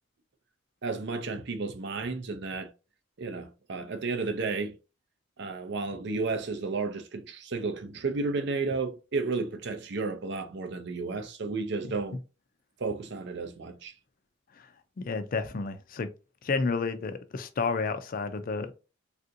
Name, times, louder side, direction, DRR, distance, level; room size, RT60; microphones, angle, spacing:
voice 1, 0.8-2.7 3.2-4.7 5.4-12.2 12.8-13.9, right 4 dB, 60° right, 0.5 m, -32 dB
voice 2, 15.0-16.1 16.4-18.7, left 4 dB, 45° left, 0.4 m, -31 dB
3.4 x 2.5 x 2.7 m
head